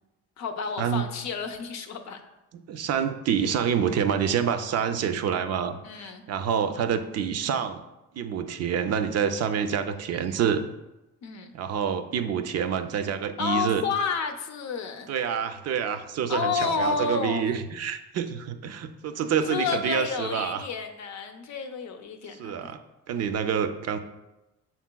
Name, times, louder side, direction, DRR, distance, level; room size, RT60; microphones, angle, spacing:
voice 1, 0.4-2.2 5.8-6.3 11.2-11.6 13.4-15.1 16.3-17.5 19.5-22.6, left 5 dB, 65° left, 6 dB, 0.6 m, -30 dB
voice 2, 2.7-7.8 8.1-10.7 11.5-13.8 15.1-20.7 22.4-22.8 23.1-24.0, right 7 dB, 55° right, 9 dB, 0.4 m, -27 dB
5.9 x 3.9 x 2.2 m, 0.99 s
cardioid pair, 90°, 30 cm